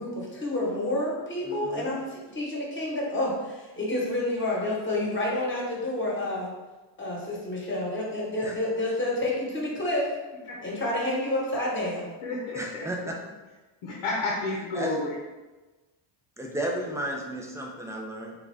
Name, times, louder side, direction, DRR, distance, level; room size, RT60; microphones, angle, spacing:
voice 1, 0.0-6.5 7.0-10.1 10.6-12.1, left 1 dB, 25° left, -4 dB, 1.1 m, -29 dB
voice 2, 1.4-1.9 8.4-8.5 12.5-13.2 14.7-15.0 16.4-18.4, right 1 dB, 5° right, -1 dB, 0.3 m, -33 dB
voice 3, 12.2-12.9 13.8-15.2, left 2 dB, 85° left, -3 dB, 0.8 m, -31 dB
3.8 x 2.4 x 3.3 m, 1.2 s
cardioid pair, 125°, 49 cm